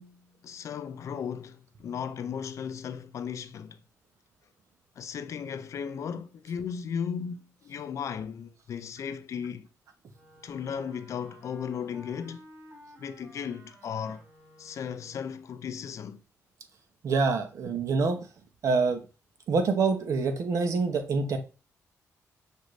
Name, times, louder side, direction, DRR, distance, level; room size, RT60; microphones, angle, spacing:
voice 1, 0.0-3.8 5.0-9.7 10.4-12.5 13.0-14.2 14.6-16.2, left 7 dB, 65° left, 0.4 m, -36 dB
Wind instrument woodwind instrument, 10.1-15.5, equal, 35° right, 2.7 m, -54 dB
voice 2, 17.0-18.3 18.6-19.0 19.5-21.4, right 4 dB, 65° right, 0.8 m, -26 dB
6.2 x 2.6 x 3.1 m
cardioid pair, 90°, 6 cm